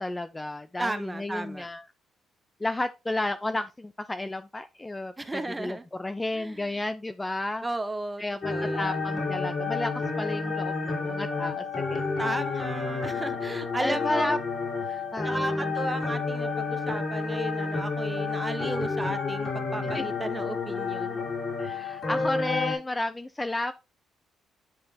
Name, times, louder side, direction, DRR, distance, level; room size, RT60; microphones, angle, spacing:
voice 1, 0.0-1.8 2.6-7.6 8.2-9.9 10.2-12.2 13.8-14.4 15.1-15.7 19.9-20.1 21.6-23.7, left 2 dB, 15° left, 0.5 m, -32 dB
voice 2, 0.8-1.7 5.2-5.8 6.3-6.8 7.6-9.0 12.2-14.4 14.9-21.3, right 2 dB, 15° right, 0.9 m, -34 dB
sound 1, 8.4-22.8, left 4 dB, 45° left, 3.3 m, -30 dB
9.9 x 3.7 x 2.7 m
cardioid pair, 90°, 0 cm